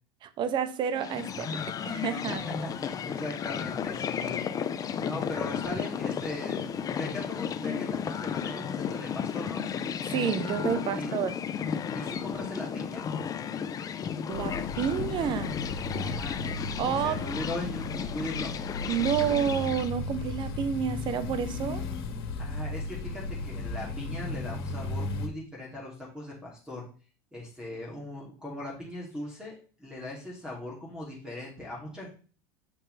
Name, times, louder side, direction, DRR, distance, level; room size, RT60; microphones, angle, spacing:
voice 1, 0.2-1.6 1.8-2.4 10.1-11.3 14.3-15.6 16.8-17.2 18.9-21.8, right 8 dB, 40° right, 12 dB, 0.9 m, -29 dB
sound 1, 0.9-19.9, left 7 dB, 30° left, 0.7 m, -33 dB
voice 2, 2.3-4.6 5.0-9.6 10.9-11.2 11.9-13.0 16.0-16.4 16.7-18.5 22.4-26.8 27.3-32.1, left 1 dB, 5° right, -3 dB, 2.8 m, -39 dB
sound 2, 14.3-25.3, left 2 dB, 85° left, 1.7 m, -35 dB
7.8 x 6.6 x 3.4 m, 0.38 s
supercardioid pair, 120°, 13 cm